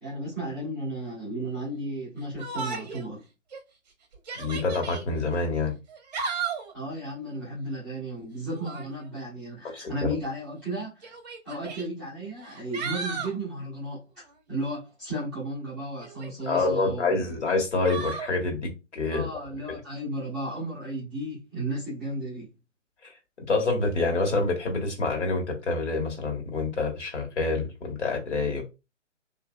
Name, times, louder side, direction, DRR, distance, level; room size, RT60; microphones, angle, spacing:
voice 1, 0.0-3.2 6.7-11.1 11.4-17.2 19.0-22.5, right 1 dB, ahead, 0.5 m, -34 dB
Yell, 2.4-3.1 3.5-3.6 4.1-5.0 5.9-6.7 8.5-8.9 10.1-10.2 11.0-11.8 12.4-13.4 16.0-16.7 17.8-18.3, right 5 dB, 35° right, 0.7 m, -35 dB
voice 2, 4.3-5.8 9.6-10.1 16.5-19.3 23.0-23.1 23.5-28.6, left 3 dB, 65° left, 1.4 m, -27 dB
3.0 x 2.6 x 2.2 m
figure-of-eight pair, 135°, 38 cm